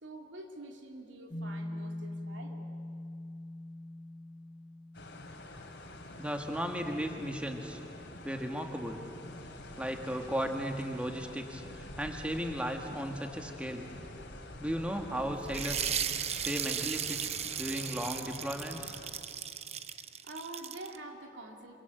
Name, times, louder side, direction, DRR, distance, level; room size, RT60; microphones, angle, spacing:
voice 1, 0.0-2.7 20.2-21.7, right 2 dB, 90° right, 2 dB, 3.0 m, -46 dB
sound 1, 1.3-10.8, left 1 dB, 25° left, 1.3 m, -45 dB
sound 2, 4.9-19.1, left 1 dB, 65° left, 2.8 m, -47 dB
voice 2, 6.2-7.8 8.2-9.0 9.8-13.9 14.6-15.9 16.4-17.2 17.6-19.0, equal, 5° right, 3 dB, 1.6 m, -35 dB
sound 3, 15.5-21.0, right 8 dB, 35° right, 0.8 m, -36 dB
27.0 x 24.5 x 8.1 m, 2.5 s
head